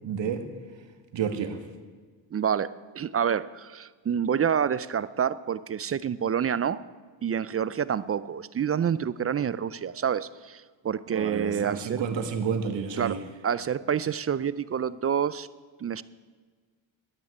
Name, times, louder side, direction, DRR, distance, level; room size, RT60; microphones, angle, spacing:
voice 1, 0.0-0.4 1.1-1.6 11.1-13.2, right 7 dB, 65° right, 7 dB, 1.8 m, -30 dB
voice 2, 2.3-6.8 7.2-12.0 13.0-13.2 13.4-15.5 15.8-16.0, right 8 dB, 30° right, 17 dB, 0.4 m, -28 dB
12.0 x 9.6 x 9.7 m, 1.5 s
cardioid pair, 115°, 47 cm